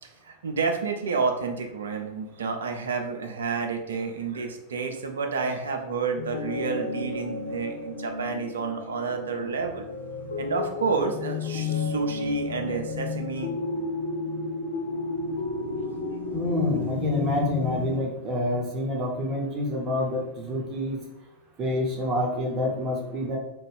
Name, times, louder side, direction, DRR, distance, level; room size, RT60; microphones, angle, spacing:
voice 1, 0.0-9.9 10.4-13.5 16.7-16.8, right 4 dB, 65° right, 5 dB, 0.4 m, -30 dB
sound 1, 6.1-18.0, left 4 dB, 65° left, 0.3 m, -32 dB
voice 2, 16.3-21.0 21.6-23.4, left 1 dB, 30° right, 0 dB, 0.7 m, -27 dB
2.6 x 2.2 x 3.4 m, 0.89 s
figure-of-eight pair, 90°, 0 cm